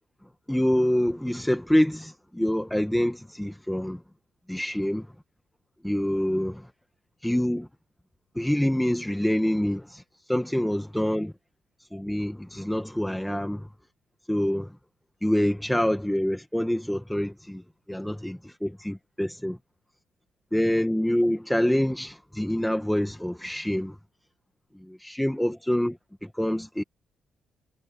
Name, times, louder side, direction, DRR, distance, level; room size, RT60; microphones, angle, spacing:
voice 1, 0.5-4.0 4.5-5.1 5.8-6.7 7.2-7.7 8.3-11.3 11.8-13.7 14.3-14.8 15.2-17.6 17.9-19.6 20.5-24.0 24.7-26.8, equal, 5° left, 1.5 m, -26 dB
cardioid pair, 90°, 0 cm